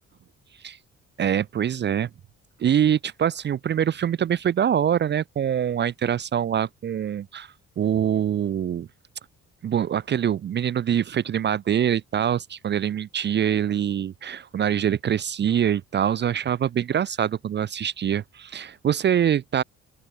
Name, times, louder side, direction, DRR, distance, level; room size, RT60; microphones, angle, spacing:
voice 1, 1.2-2.1 2.6-8.9 9.6-19.6, right 9 dB, 35° right, 0.5 m, -24 dB
open air
cardioid pair, 160°, 30 cm